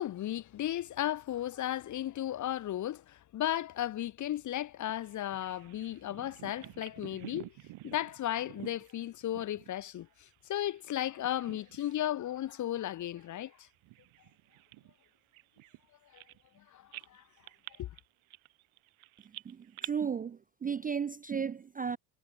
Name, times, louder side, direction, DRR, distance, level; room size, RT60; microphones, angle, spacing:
voice 1, 0.0-7.5 7.8-13.7 16.1-16.2 16.6-17.2 17.8-17.9, left 12 dB, 40° left, 0.6 m, -35 dB
Bird vocalization bird call bird song, 4.9-10.9 11.1-12.0 12.4-12.6 13.2-16.6 16.9-19.9, right 19 dB, 70° right, 2.4 m, -50 dB
voice 2, 19.4-22.0, right 6 dB, 20° right, 0.3 m, -34 dB
supercardioid pair, 80°, 49 cm